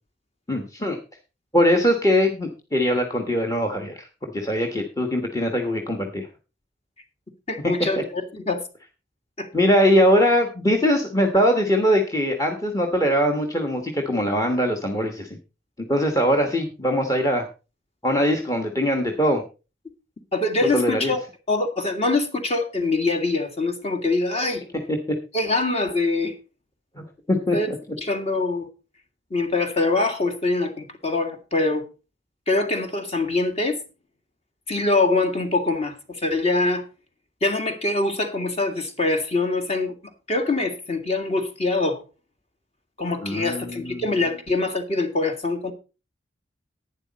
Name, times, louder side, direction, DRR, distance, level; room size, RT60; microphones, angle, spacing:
voice 1, 0.5-1.0 1.5-6.3 9.5-15.4 15.9-17.5 18.0-19.4 20.7-21.1 24.9-25.0 27.0-27.8 43.2-44.1, equal, 20° left, 4 dB, 1.3 m, -22 dB
voice 2, 7.5-8.6 9.4-9.5 20.3-21.2 21.5-24.6 25.3-26.4 27.5-27.7 28.0-28.7 29.3-31.9 32.5-33.8 34.7-36.9 37.4-39.9 40.3-42.0 43.0-45.7, left 2 dB, 35° left, 6 dB, 1.9 m, -24 dB
11.5 x 9.5 x 4.1 m, 0.32 s
head